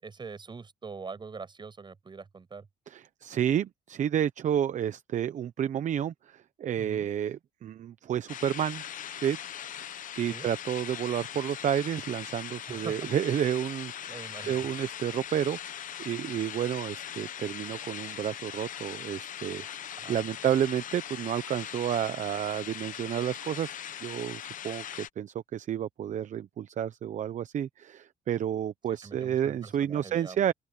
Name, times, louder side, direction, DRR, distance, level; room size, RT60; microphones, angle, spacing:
voice 1, 0.0-2.7 6.8-7.1 10.3-10.5 12.7-13.1 14.1-14.7 20.0-20.2 29.0-30.5, right 4 dB, 25° right, 6.6 m, -43 dB
voice 2, 2.9-8.8 9.2-9.4 10.1-14.1 14.4-19.6 20.1-30.5, right 10 dB, 45° right, 0.8 m, -30 dB
sound 1, 8.3-25.1, left 10 dB, 50° left, 1.0 m, -40 dB
open air
cardioid pair, 110°, 17 cm